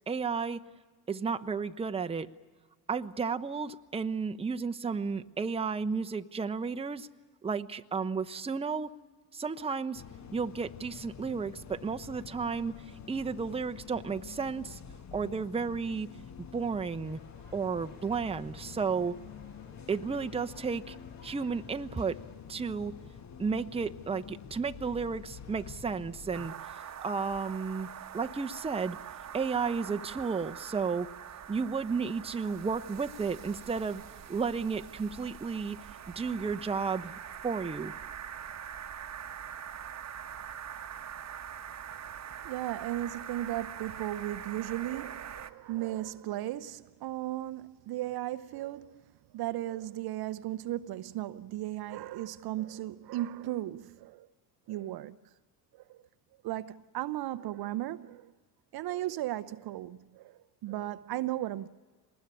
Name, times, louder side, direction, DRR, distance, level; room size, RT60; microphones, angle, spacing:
voice 1, 0.1-0.6 1.1-2.3 2.9-7.1 7.4-8.9 9.3-10.0 10.3-12.7 13.1-14.8 15.1-16.1 16.4-17.2 17.5-19.2 19.9-20.9 21.2-22.2 22.5-22.9 23.4-27.9 28.1-29.0 29.3-31.1 31.5-34.0 34.3-35.8 36.2-37.9, right 5 dB, 10° right, 0.8 m, -33 dB
sound 1, 9.9-26.5, left 7 dB, 35° left, 1.1 m, -48 dB
sound 2, 17.0-22.4, left 4 dB, 60° left, 3.0 m, -58 dB
sound 3, 26.3-45.5, right 8 dB, 35° right, 1.1 m, -44 dB
voice 2, 42.1-54.3 54.7-55.2 55.7-56.0 56.4-58.3 58.7-61.7, right 14 dB, 50° right, 0.7 m, -36 dB
24.5 x 20.0 x 9.9 m
hypercardioid pair, 55°, 49 cm